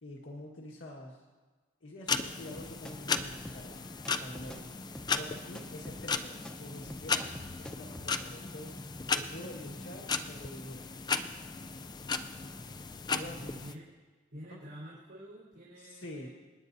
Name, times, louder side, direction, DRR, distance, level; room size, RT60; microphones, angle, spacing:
voice 1, 0.0-1.2 1.8-3.9 4.2-4.7 5.0-7.3 7.6-8.8 9.1-10.9 13.0-13.5 14.5-14.6 15.8-16.3, left 1 dB, 80° left, -3 dB, 1.6 m, -46 dB
sound 1, 2.1-13.7, left 5 dB, 20° left, 0.4 m, -36 dB
sound 2, 2.6-8.1, equal, 5° left, 0.8 m, -48 dB
voice 2, 12.4-12.9 13.3-13.8 14.3-16.3, equal, 70° right, -9 dB, 4.0 m, -49 dB
28.0 x 9.8 x 2.7 m, 1.3 s
head